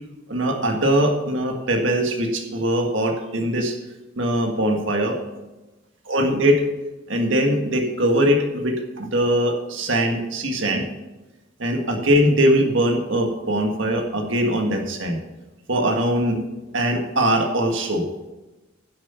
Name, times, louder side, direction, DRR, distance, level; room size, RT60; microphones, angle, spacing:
voice 1, 0.3-3.7 4.2-5.2 6.1-6.6 7.1-10.8 11.6-15.2 15.7-16.4 16.7-18.1, right 1 dB, 65° right, 2 dB, 1.8 m, -21 dB
11.5 x 7.6 x 5.6 m, 1.1 s
head